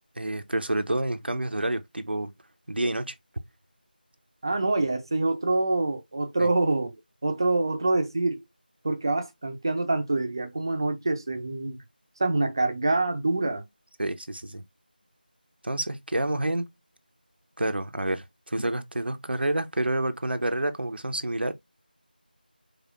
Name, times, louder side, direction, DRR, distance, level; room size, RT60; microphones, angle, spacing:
voice 1, 0.2-2.3 2.7-3.1 14.0-14.6 15.6-16.7 17.6-21.5, right 1 dB, 90° right, 0.6 m, -28 dB
voice 2, 4.4-7.0 7.2-8.4 8.8-11.8 12.2-13.6, right 2 dB, 25° right, 0.5 m, -26 dB
5.0 x 2.4 x 2.4 m
figure-of-eight pair, 175°, 5 cm